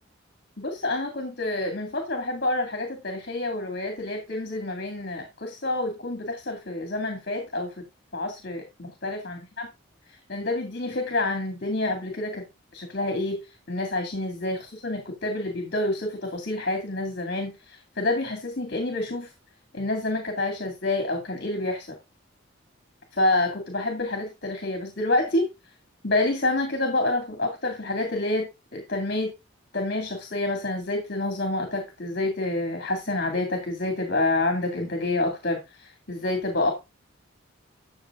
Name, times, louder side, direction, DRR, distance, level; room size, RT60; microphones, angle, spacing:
voice 1, 0.6-7.8 8.1-9.7 10.1-12.4 12.7-19.3 19.7-21.9 23.1-25.5 26.0-29.3 29.7-36.7, left 2 dB, 50° left, 4 dB, 2.4 m, -28 dB
12.5 x 6.9 x 3.7 m, 0.25 s
head